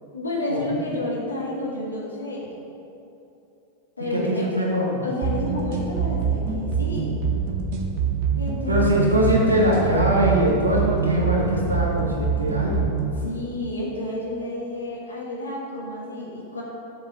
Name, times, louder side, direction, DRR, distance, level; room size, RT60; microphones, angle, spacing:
voice 1, 0.1-2.6 4.0-4.5 5.0-7.2 8.3-9.1 13.2-16.6, left 1 dB, 80° left, -4 dB, 1.6 m, -30 dB
voice 2, 4.1-5.0 8.7-12.9, equal, 80° right, -3 dB, 1.5 m, -22 dB
sound 1, 5.2-13.2, right 6 dB, 45° right, 0.9 m, -25 dB
7.1 x 5.2 x 6.0 m, 2.9 s
figure-of-eight pair, 90°, 0 cm